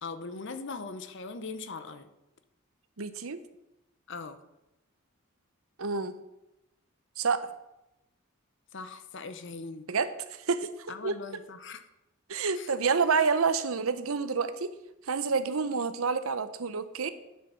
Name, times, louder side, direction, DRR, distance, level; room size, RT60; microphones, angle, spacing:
voice 1, 0.0-2.1 4.1-4.4 8.7-9.9 10.9-11.8 12.6-12.7, left 4 dB, 55° left, 10 dB, 0.8 m, -40 dB
voice 2, 3.0-3.4 5.8-6.2 7.2-7.5 9.9-11.1 12.3-14.7 15.0-17.1, right 5 dB, 70° right, 12 dB, 0.7 m, -28 dB
9.7 x 6.8 x 5.6 m, 0.93 s
head